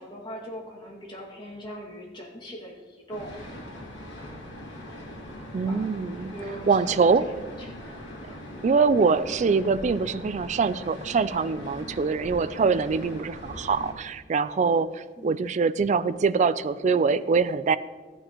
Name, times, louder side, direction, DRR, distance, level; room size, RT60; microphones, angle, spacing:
voice 1, 0.0-3.3 5.7-5.9 6.3-8.4 15.2-15.4, equal, 25° left, -2 dB, 2.0 m, -41 dB
sound 1, 3.1-13.9, equal, 90° left, 2.2 m, -41 dB
voice 2, 5.5-7.3 8.6-17.8, right 5 dB, 40° right, 15 dB, 0.3 m, -24 dB
13.5 x 9.2 x 2.9 m, 1.4 s
head